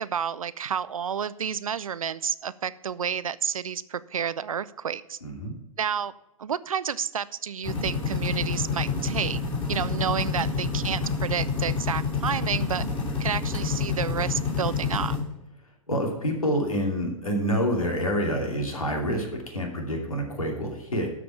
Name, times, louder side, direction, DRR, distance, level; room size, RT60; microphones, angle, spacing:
voice 1, 0.0-5.2 5.8-6.1 6.4-9.4 9.7-12.8 13.2-15.2, right 7 dB, 75° right, 17 dB, 0.5 m, -30 dB
voice 2, 5.2-5.6 15.9-21.1, equal, 80° left, 2 dB, 2.8 m, -27 dB
sound 1, 7.6-15.2, left 5 dB, 25° left, 3.5 m, -28 dB
12.5 x 5.1 x 5.7 m, 0.96 s
figure-of-eight pair, 110°, 18 cm